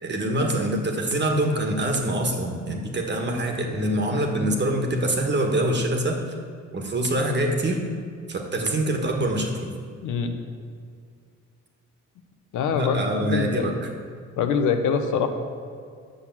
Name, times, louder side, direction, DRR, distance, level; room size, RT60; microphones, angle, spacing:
voice 1, 0.0-6.2 6.7-7.8 8.3-9.7 12.7-13.9, right 1 dB, 35° right, 3 dB, 1.5 m, -25 dB
voice 2, 10.0-10.3 12.5-13.7 14.4-15.3, left 6 dB, 85° left, 6 dB, 1.0 m, -24 dB
8.1 x 6.2 x 7.5 m, 2.3 s
cardioid pair, 90°, 30 cm